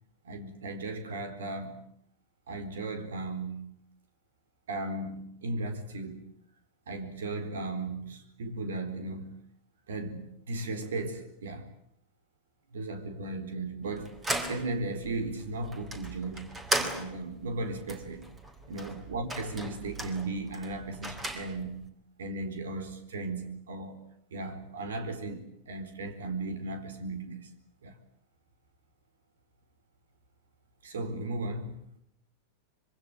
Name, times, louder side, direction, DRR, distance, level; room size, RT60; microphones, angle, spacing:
voice 1, 0.2-1.9 2.5-3.7 4.7-6.3 6.9-9.3 9.9-11.7 12.7-14.2 14.5-18.3 18.7-21.9 22.2-24.0 24.3-27.5 27.8-27.9 30.8-31.9, right 2 dB, 65° right, 4.1 m, -36 dB
sound 1, 13.8-21.9, right 2 dB, 15° right, 3.6 m, -37 dB
26.0 x 24.0 x 8.9 m
figure-of-eight pair, 90°, 0 cm